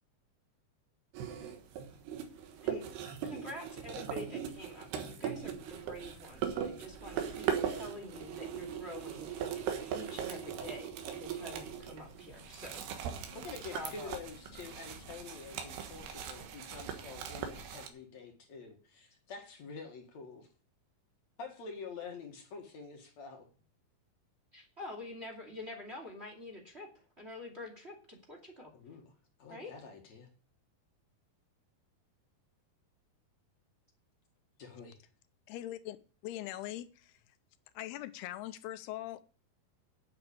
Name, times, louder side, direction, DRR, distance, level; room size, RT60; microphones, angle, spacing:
sound 1, 1.1-17.9, right 8 dB, 85° right, 3.5 m, -39 dB
voice 1, 3.2-9.7 9.9-12.8 13.7-14.2 24.5-26.9 27.2-28.7 29.5-29.7, left 1 dB, 20° right, 2 dB, 2.1 m, -47 dB
sound 2, 5.3-17.7, left 1 dB, 15° left, 1.6 m, -58 dB
voice 2, 13.3-20.5 21.4-23.5 28.7-29.1 29.4-30.3 34.6-35.0, left 5 dB, 55° left, 3 dB, 2.4 m, -47 dB
voice 3, 35.5-36.0 36.2-37.4 37.7-39.2, left 14 dB, 85° left, 13 dB, 2.7 m, -42 dB
8.8 x 7.9 x 8.3 m, 0.41 s
omnidirectional pair, 4.5 m